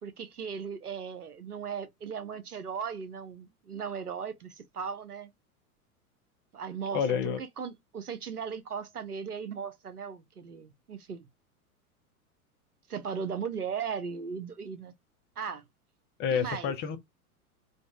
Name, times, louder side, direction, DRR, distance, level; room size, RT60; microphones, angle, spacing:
voice 1, 0.0-5.3 6.5-11.3 12.9-14.9 15.4-15.6 16.3-16.7, right 6 dB, 80° right, 0.8 m, -37 dB
voice 2, 6.9-7.4 16.2-17.0, left 7 dB, 25° left, 0.7 m, -28 dB
3.9 x 2.4 x 2.2 m
figure-of-eight pair, 90°, 45 cm